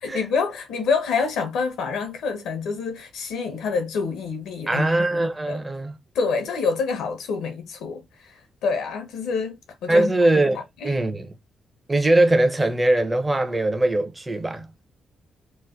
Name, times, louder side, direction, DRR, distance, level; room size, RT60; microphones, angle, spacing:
voice 1, 0.0-4.8 5.5-5.6 6.1-8.3 8.6-10.1 10.8-10.9, left 5 dB, 85° left, 0.9 m, -27 dB
voice 2, 4.7-6.0 9.9-11.3 11.9-14.7, right 1 dB, 20° right, 0.8 m, -21 dB
3.1 x 2.2 x 3.6 m
cardioid pair, 70°, 0 cm